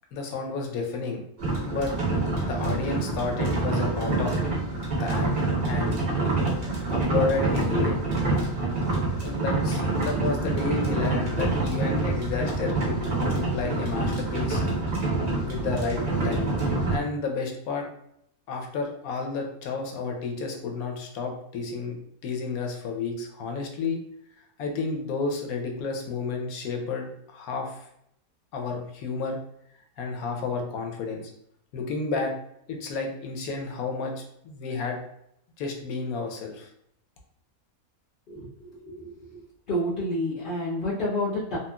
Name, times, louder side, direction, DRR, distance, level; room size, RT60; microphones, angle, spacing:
voice 1, 0.1-1.2 1.6-1.9 2.4-4.4 4.9-5.3 5.7-6.0 6.9-8.0 9.2-13.0 13.3-14.6 15.5-17.9 18.5-21.9 22.2-24.0 24.6-27.9 28.5-29.4 30.0-31.3 31.7-32.3 32.7-35.0 35.6-36.7, left 4 dB, 80° left, 2 dB, 1.1 m, -31 dB
sound 1, 1.4-17.0, right 2 dB, 45° right, 0.5 m, -26 dB
voice 2, 38.3-39.3 39.7-41.6, left 1 dB, 55° left, -8 dB, 0.6 m, -29 dB
3.0 x 2.8 x 2.2 m, 0.73 s
omnidirectional pair, 1.6 m